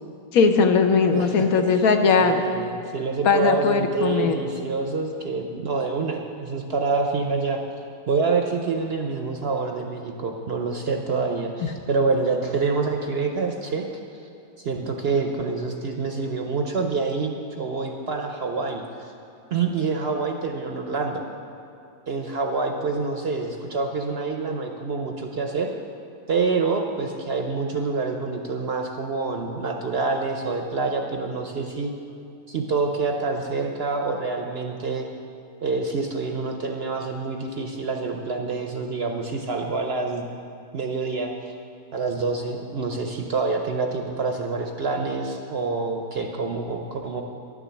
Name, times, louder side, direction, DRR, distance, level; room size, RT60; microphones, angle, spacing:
voice 1, 0.3-2.4 3.2-4.4, left 5 dB, 70° left, 6 dB, 1.2 m, -19 dB
voice 2, 1.1-1.8 2.2-7.6 8.1-13.8 14.6-19.1 19.5-21.3 22.1-25.7 26.3-31.9 32.5-35.1 35.6-40.3 40.7-41.5 41.9-47.2, right 4 dB, 55° right, 3 dB, 0.8 m, -27 dB
10.5 x 6.1 x 8.1 m, 2.7 s
omnidirectional pair, 1.6 m